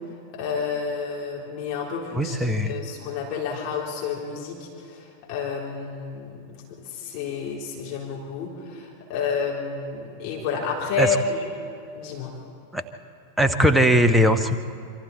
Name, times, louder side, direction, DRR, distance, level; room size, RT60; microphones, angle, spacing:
voice 1, 0.3-6.4 6.8-11.4 11.9-12.4, left 5 dB, 40° left, -3 dB, 4.0 m, -30 dB
voice 2, 2.1-2.8 11.0-11.2 12.7-12.8 13.4-14.6, equal, 5° right, 8 dB, 1.1 m, -19 dB
27.0 x 24.5 x 4.4 m, 2.4 s
figure-of-eight pair, 90°, 0 cm